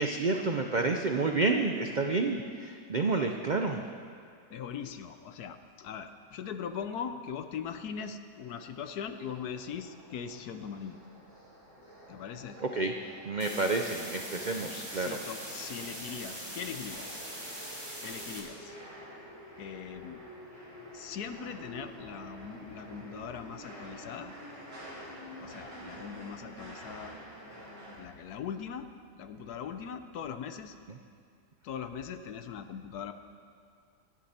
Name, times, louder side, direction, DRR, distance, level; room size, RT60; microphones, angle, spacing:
voice 1, 0.0-3.8 12.6-12.9 13.3-15.2, right 3 dB, 65° right, 4 dB, 0.4 m, -29 dB
voice 2, 4.5-11.0 12.1-12.6 14.9-17.2 18.0-18.8 19.6-20.2 20.9-24.3 25.4-27.1 28.0-28.9 29.2-30.7 31.6-33.1, left 7 dB, 70° left, 9 dB, 1.2 m, -40 dB
sound 1, 8.4-28.0, equal, 45° right, 4.2 m, -49 dB
sound 2, 13.4-18.4, equal, 15° right, 2.6 m, -42 dB
25.0 x 10.0 x 4.3 m, 2.2 s
omnidirectional pair, 1.8 m